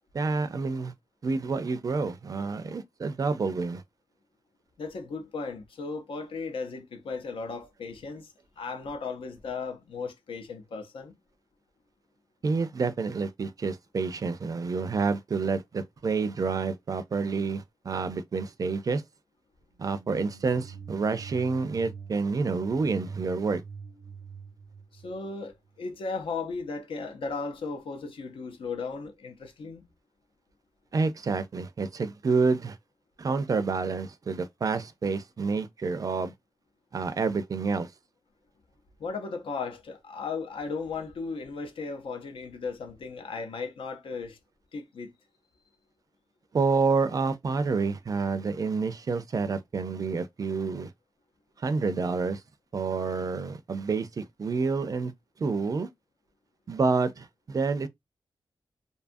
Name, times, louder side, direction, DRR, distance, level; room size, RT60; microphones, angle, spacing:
voice 1, 0.1-0.9 1.2-3.8 12.4-19.0 19.8-23.6 30.9-32.8 33.2-36.3 36.9-37.9 46.5-50.9 51.6-52.4 52.7-55.1 55.4-55.9 56.7-57.9, right 4 dB, 45° right, 0.4 m, -28 dB
voice 2, 4.8-11.1 24.9-29.9 39.0-44.4 44.7-45.1, left 4 dB, 85° left, 0.7 m, -36 dB
sound 1, 19.7-25.8, right 6 dB, 85° right, 0.6 m, -45 dB
2.7 x 2.3 x 2.5 m
wide cardioid pair, 140°, 9 cm